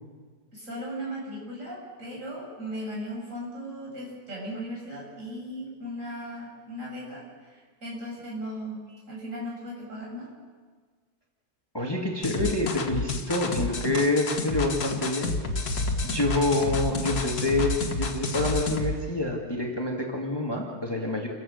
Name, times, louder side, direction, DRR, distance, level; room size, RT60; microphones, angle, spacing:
voice 1, 0.5-8.8 9.1-10.3, equal, 55° right, -4 dB, 7.4 m, -37 dB
voice 2, 11.7-15.4 16.0-21.3, left 2 dB, 15° left, -1 dB, 2.1 m, -27 dB
sound 1, 12.2-18.9, left 2 dB, 75° left, 2.1 m, -29 dB
28.5 x 15.5 x 6.5 m, 1.5 s
omnidirectional pair, 1.7 m